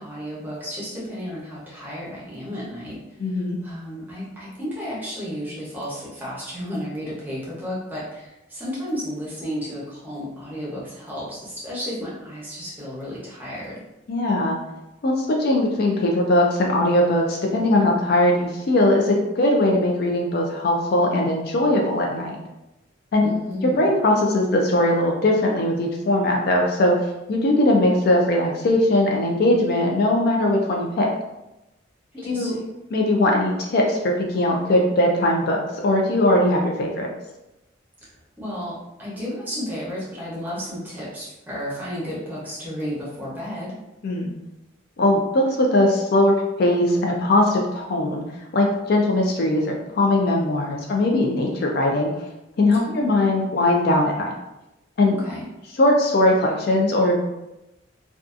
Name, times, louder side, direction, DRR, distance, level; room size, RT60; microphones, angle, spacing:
voice 1, 0.0-13.8 23.2-23.9 32.1-32.6 38.4-43.8 52.7-53.0 55.1-55.5, equal, 10° right, -7 dB, 0.8 m, -33 dB
voice 2, 3.2-3.6 14.1-14.6 15.0-22.4 23.1-23.3 23.6-31.1 32.3-32.5 32.9-37.1 44.0-44.3 45.0-48.2 48.5-52.1 52.6-54.3 55.0-55.1 55.8-57.2, left 1 dB, 50° left, 0 dB, 0.3 m, -20 dB
2.6 x 2.3 x 2.4 m, 0.95 s
head